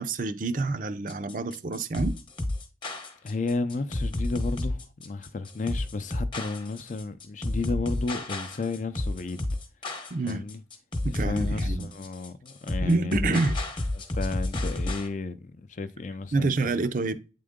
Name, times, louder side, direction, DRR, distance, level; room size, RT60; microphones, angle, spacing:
voice 1, 0.0-2.2 10.1-10.4 11.0-11.9 12.8-13.6 16.3-17.2, right 3 dB, 45° right, 0.5 m, -27 dB
sound 1, 1.1-15.1, left 1 dB, 25° left, 0.9 m, -31 dB
voice 2, 3.2-9.4 10.3-10.6 11.1-13.4 13.9-16.8, left 3 dB, 40° left, 0.5 m, -33 dB
8.6 x 3.8 x 3.6 m
head